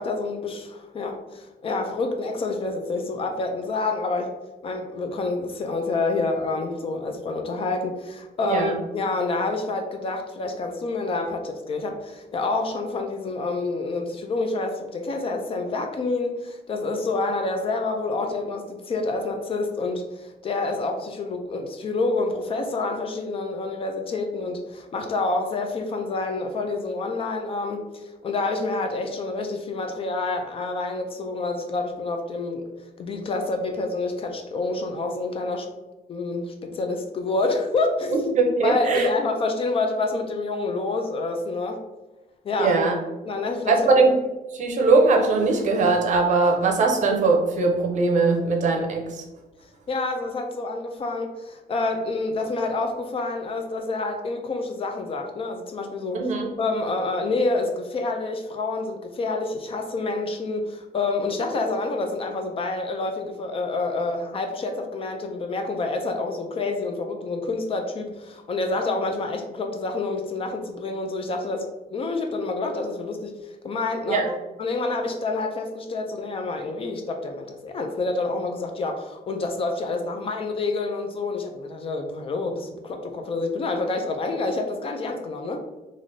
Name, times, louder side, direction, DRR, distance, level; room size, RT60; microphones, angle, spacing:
voice 1, 0.0-4.3 4.6-32.7 33.0-35.7 36.1-38.3 38.6-41.8 42.4-42.8 43.2-44.0 49.9-74.3 74.6-85.6, left 3 dB, 35° left, 4 dB, 0.3 m, -28 dB
voice 2, 8.4-8.7 38.1-39.1 42.6-42.9 43.7-44.1 44.5-49.2 56.1-56.5 74.1-74.3, right 3 dB, 50° right, 2 dB, 0.6 m, -20 dB
3.3 x 2.5 x 2.6 m, 1.1 s
cardioid pair, 155°, 16 cm